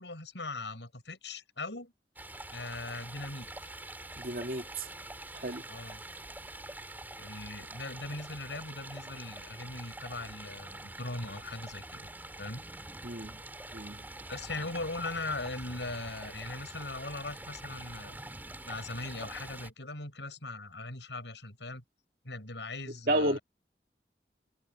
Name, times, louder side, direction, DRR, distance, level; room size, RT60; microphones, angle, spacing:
voice 1, 0.0-1.9 2.5-3.7 5.7-6.0 7.2-12.1 12.4-12.6 13.9-18.3 18.6-21.8 22.2-23.4, left 2 dB, 90° left, 7.5 m, -40 dB
Stream, 2.2-19.7, right 2 dB, 10° right, 3.2 m, -45 dB
voice 2, 4.2-4.9 5.3-5.6 13.0-13.4 13.7-14.0 23.1-23.4, right 1 dB, 55° right, 2.2 m, -31 dB
head